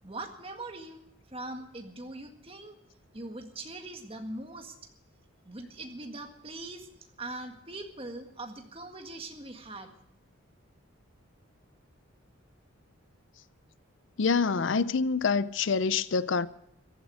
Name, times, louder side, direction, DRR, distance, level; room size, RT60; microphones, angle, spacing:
voice 1, 0.0-1.0 1.3-2.8 3.1-4.8 5.5-6.9 7.2-9.9, right 2 dB, 25° right, 1.8 m, -41 dB
voice 2, 14.2-16.5, left 5 dB, 60° left, 0.5 m, -26 dB
15.0 x 13.0 x 6.3 m
head